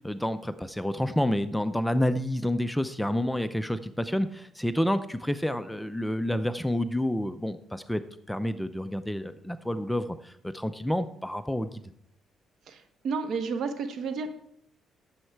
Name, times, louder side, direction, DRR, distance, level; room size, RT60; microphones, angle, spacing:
voice 1, 0.0-11.8, left 1 dB, 5° left, 11 dB, 0.6 m, -29 dB
voice 2, 12.7-14.3, right 5 dB, 65° right, 8 dB, 1.2 m, -31 dB
9.9 x 7.3 x 4.6 m, 0.70 s
cardioid pair, 90°, 0 cm